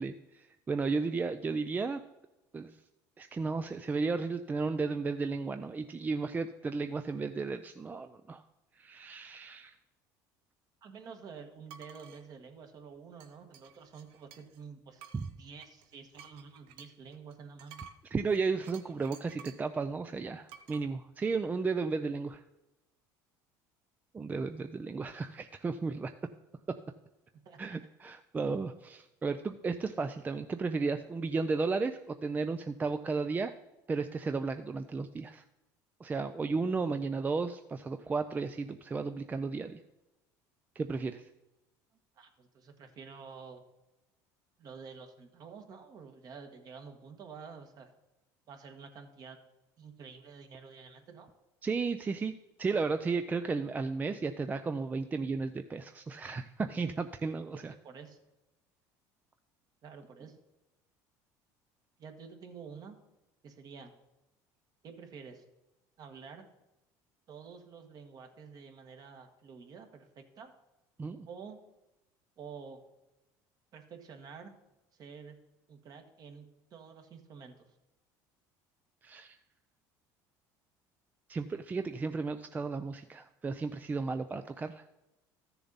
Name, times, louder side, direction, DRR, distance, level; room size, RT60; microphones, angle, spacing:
voice 1, 0.0-2.0 2.5-2.8 3.2-8.4 8.8-9.7 15.1-15.3 18.1-22.4 24.1-26.1 26.7-26.8 27.6-33.5 33.9-35.4 36.0-39.8 40.8-41.3 51.6-52.3 52.6-57.7 71.0-71.3 79.0-79.4 81.3-84.8, right 4 dB, 20° right, 9 dB, 0.4 m, -34 dB
voice 2, 10.8-15.1 15.3-17.8 27.4-27.8 42.1-43.6 44.6-47.9 48.5-49.4 49.8-51.3 57.5-58.2 59.8-60.4 62.0-62.9 63.4-63.9 64.8-65.4 66.0-66.4 67.3-70.5 71.3-71.6 72.4-72.8 73.7-74.5 75.0-75.4 75.7-77.7, right 5 dB, 45° right, 6 dB, 1.5 m, -49 dB
sound 1, 11.7-12.2 13.2-14.6 15.0-19.7 20.5-20.9, right 7 dB, 75° right, 0.9 m, -53 dB
13.5 x 6.9 x 4.0 m, 0.97 s
supercardioid pair, 110°, 9 cm